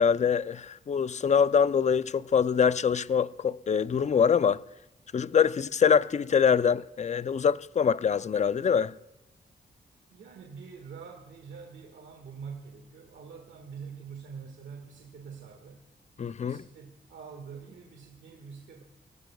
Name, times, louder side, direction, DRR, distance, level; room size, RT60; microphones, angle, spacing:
voice 1, 0.0-4.6 5.1-8.9 16.2-16.6, left 7 dB, 40° left, 0.5 m, -24 dB
voice 2, 10.1-15.8 16.4-18.8, right 6 dB, 85° right, 1.7 m, -45 dB
25.5 x 17.0 x 2.3 m
cardioid pair, 75°, 19 cm